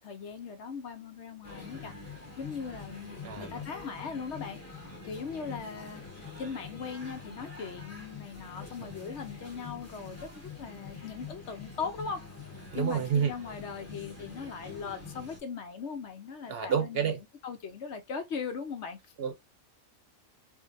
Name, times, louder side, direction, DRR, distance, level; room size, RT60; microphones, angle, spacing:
voice 1, 0.0-1.9 2.4-4.6 5.0-6.0 6.4-12.2 12.7-17.1 17.4-19.0, left 5 dB, 65° left, 0.8 m, -39 dB
sound 1, 1.4-15.4, left 4 dB, 10° left, 1.1 m, -45 dB
voice 2, 3.2-3.6 8.6-8.9 12.7-13.3 16.5-17.2 19.2-19.3, right 7 dB, 50° right, 0.9 m, -29 dB
4.9 x 2.2 x 2.5 m
omnidirectional pair, 1.5 m